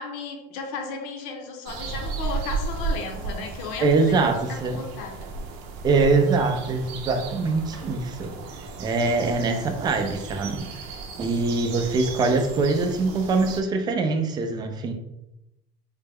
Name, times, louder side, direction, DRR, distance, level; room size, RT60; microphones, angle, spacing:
voice 1, 0.0-5.3, left 4 dB, 70° left, 4 dB, 0.7 m, -35 dB
sound 1, 1.7-13.6, right 4 dB, 65° right, 0.6 m, -35 dB
voice 2, 3.8-4.8 5.8-8.3 8.8-10.7 11.2-14.9, right 3 dB, 20° right, 5 dB, 0.4 m, -23 dB
4.0 x 2.2 x 3.4 m, 0.90 s
cardioid pair, 160°, 20 cm